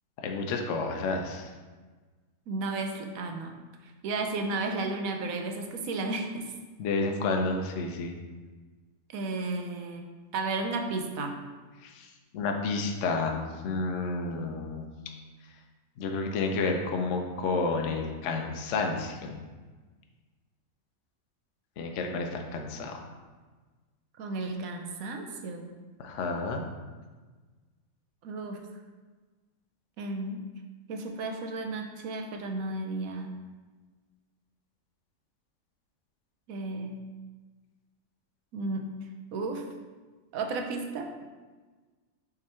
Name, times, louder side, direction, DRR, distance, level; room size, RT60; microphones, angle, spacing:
voice 1, 0.2-1.5 6.8-8.2 11.8-14.9 16.0-19.5 21.8-23.0 26.0-26.6, left 3 dB, 65° left, 3 dB, 1.0 m, -30 dB
voice 2, 2.5-3.6 4.0-6.5 9.1-11.4 24.2-25.7 28.2-28.6 30.0-30.4 30.9-33.3 36.5-37.0 38.5-38.9 39.3-39.7 40.3-41.2, right 3 dB, 80° right, 4 dB, 1.1 m, -33 dB
6.1 x 3.8 x 4.3 m, 1.3 s
omnidirectional pair, 1.5 m